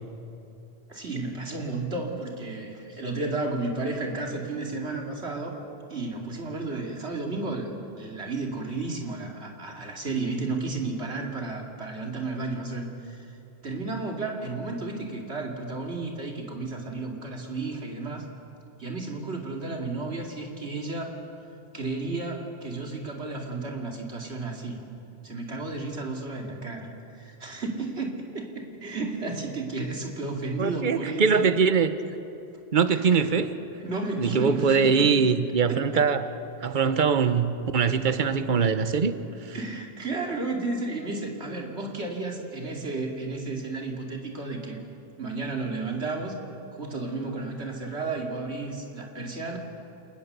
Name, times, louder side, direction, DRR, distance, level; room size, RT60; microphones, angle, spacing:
voice 1, 0.9-5.6 5.9-7.7 8.0-13.4 13.6-18.3 18.8-21.2 21.7-24.8 25.2-26.9 27.1-31.5 32.9-33.4 33.8-35.1 35.7-36.0 39.5-44.8 45.2-46.3 46.7-49.6, right 3 dB, 90° right, 1 dB, 2.9 m, -33 dB
voice 2, 30.6-31.9 32.7-33.5 34.2-36.3 36.6-39.1 39.4-39.6, right 5 dB, 50° right, 11 dB, 1.1 m, -22 dB
29.5 x 19.5 x 6.9 m, 2.9 s
omnidirectional pair, 1.1 m